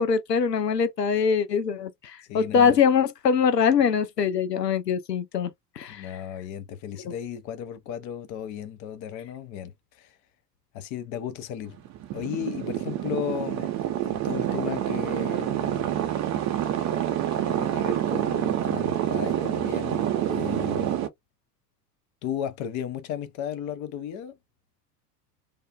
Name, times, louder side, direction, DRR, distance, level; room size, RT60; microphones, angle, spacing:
voice 1, 0.0-5.5 5.8-6.1 7.1-7.2, left 6 dB, 85° left, 0.6 m, -23 dB
voice 2, 2.3-2.8 5.9-10.2 10.7-11.8 12.1-13.8 14.0-16.1 17.4-21.0 22.2-24.4, left 9 dB, 40° left, 0.7 m, -35 dB
sound 1, 11.7-21.1, right 11 dB, 35° right, 0.7 m, -27 dB
3.4 x 2.4 x 2.3 m
figure-of-eight pair, 70°, 47 cm